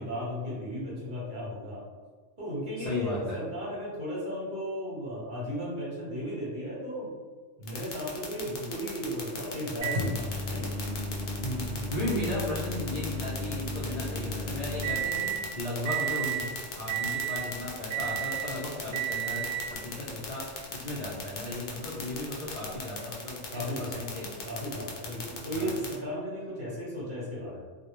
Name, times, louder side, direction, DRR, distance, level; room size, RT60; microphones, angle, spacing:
voice 1, 0.0-1.8 2.4-7.1 7.6-10.7 23.5-24.2 24.4-27.6, equal, 45° right, -7 dB, 0.8 m, -35 dB
voice 2, 2.8-3.4 11.4-24.3 24.7-24.8 25.5-25.7, left 1 dB, 55° left, -8 dB, 0.4 m, -35 dB
sound 1, 7.7-25.9, left 6 dB, 70° left, 0.9 m, -38 dB
Microwave oven, 9.8-15.5 15.9-16.5 16.9-17.5 17.9-18.5 18.9-19.8 20.7-20.8 22.8-22.9, right 4 dB, 85° right, 0.9 m, -33 dB
2.2 x 2.0 x 2.9 m, 1.5 s
omnidirectional pair, 1.3 m